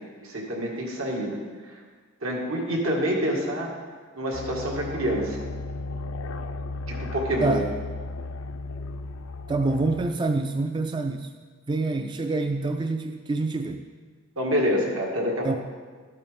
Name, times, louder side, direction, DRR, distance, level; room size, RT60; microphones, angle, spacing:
voice 1, 0.2-1.4 1.7-1.8 2.2-3.7 4.2-5.4 6.9-7.6 14.4-15.6, equal, 80° right, -2 dB, 2.0 m, -27 dB
sound 1, 4.3-10.1, left 2 dB, 85° left, 0.5 m, -35 dB
voice 2, 9.5-11.3 11.7-13.8 15.4-15.6, right 3 dB, 20° right, 6 dB, 0.3 m, -26 dB
12.5 x 8.8 x 3.6 m, 1.5 s
head